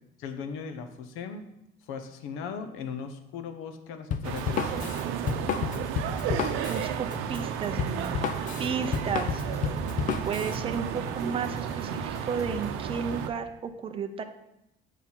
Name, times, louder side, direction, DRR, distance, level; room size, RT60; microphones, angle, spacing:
voice 1, 0.2-1.5 1.9-5.0, left 6 dB, 90° left, 8 dB, 0.9 m, -38 dB
Drum kit, 4.1-10.6, left 7 dB, 40° left, 0.5 m, -31 dB
sound 1, 4.2-13.3, right 9 dB, 85° right, 0.7 m, -33 dB
sound 2, 4.5-12.9, equal, 15° left, 1.7 m, -43 dB
voice 2, 6.7-8.2 8.6-9.4 10.2-14.2, right 6 dB, 25° right, 7 dB, 0.6 m, -33 dB
8.2 x 4.6 x 5.5 m, 0.85 s
cardioid pair, 155°, 20 cm